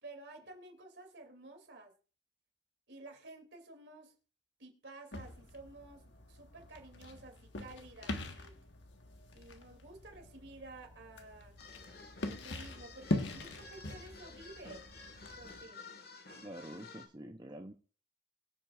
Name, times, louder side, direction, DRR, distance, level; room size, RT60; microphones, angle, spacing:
voice 1, 0.0-1.9 2.9-4.1 4.6-6.0 6.3-8.5 9.3-11.6 12.2-14.9 15.3-15.9, right 2 dB, 70° right, 4 dB, 2.8 m, -52 dB
sound 1, 5.1-15.6, left 2 dB, 80° left, 1.5 m, -43 dB
sound 2, 11.6-17.1, left 4 dB, 55° left, 1.7 m, -52 dB
voice 2, 16.4-17.7, right 1 dB, 25° right, 4 dB, 0.7 m, -47 dB
23.0 x 7.9 x 2.5 m, 0.38 s
head